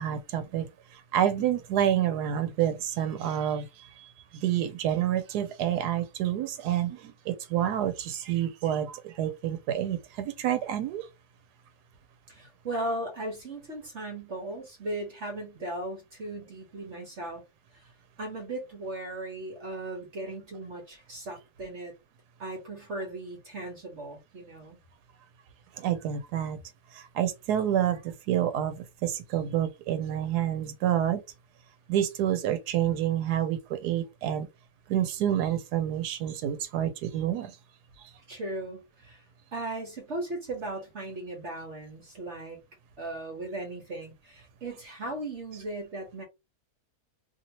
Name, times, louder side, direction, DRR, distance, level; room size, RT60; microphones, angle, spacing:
voice 1, 0.0-11.1 25.8-26.6 26.9-31.2 31.9-34.5 34.9-37.6 38.0-38.1, right 10 dB, 90° right, 1.1 m, -28 dB
voice 2, 12.3-17.4 17.7-17.9 18.2-21.9 22.4-24.8 38.3-39.2 39.5-42.6 43.0-46.2, right 1 dB, 50° right, 1.2 m, -37 dB
2.8 x 2.7 x 2.9 m
omnidirectional pair, 1.7 m